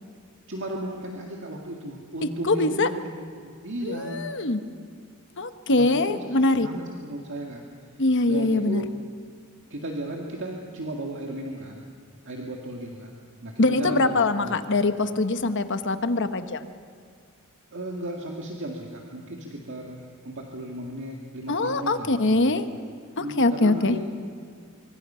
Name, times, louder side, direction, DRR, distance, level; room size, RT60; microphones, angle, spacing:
voice 1, 0.5-4.3 5.7-7.7 8.2-8.9 9.7-11.8 12.2-14.6 17.7-22.4 23.2-24.1, right 1 dB, 60° right, 0 dB, 2.0 m, -35 dB
voice 2, 2.4-2.9 3.8-4.6 5.4-6.7 8.0-8.8 13.6-16.7 21.5-22.6 23.2-24.0, left 2 dB, 55° left, 10 dB, 1.2 m, -23 dB
25.0 x 24.5 x 5.7 m, 2.2 s
head